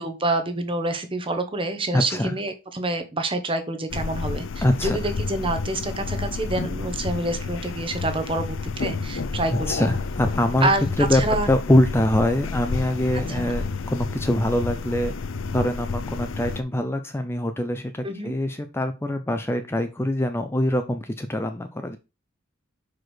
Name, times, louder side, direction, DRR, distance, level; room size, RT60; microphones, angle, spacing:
voice 1, 0.0-9.9 10.6-11.5 13.3-13.5 18.0-18.3, right 2 dB, 25° right, 7 dB, 1.0 m, -27 dB
voice 2, 1.9-2.4 4.6-5.0 9.5-10.7 11.0-11.2 11.5-15.1 15.5-22.0, left 1 dB, 10° left, 7 dB, 0.5 m, -24 dB
sound 1, 3.9-16.6, left 4 dB, 75° left, 0.6 m, -30 dB
6.1 x 4.9 x 4.5 m, 0.27 s
head